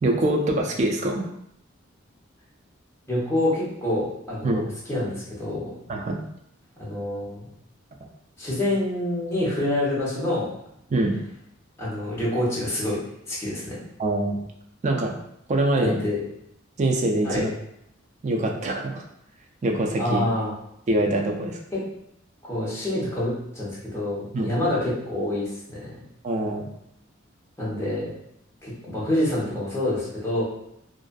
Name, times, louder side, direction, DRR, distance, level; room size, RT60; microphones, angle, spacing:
voice 1, 0.0-1.2 4.4-4.7 5.9-6.2 10.9-11.1 14.0-14.4 14.8-15.1 15.5-16.0 16.8-17.5 18.2-19.0 19.6-20.2 20.9-21.6 24.3-24.5 26.2-26.7, right 1 dB, 35° right, 1 dB, 0.3 m, -24 dB
voice 2, 3.1-5.7 6.8-7.4 8.4-10.5 11.8-13.0 13.3-13.8 15.8-16.2 17.2-17.4 20.0-20.5 22.4-25.9 27.6-28.1 28.6-30.4, left 1 dB, 15° left, -8 dB, 0.8 m, -27 dB
2.5 x 2.4 x 2.2 m, 0.75 s
head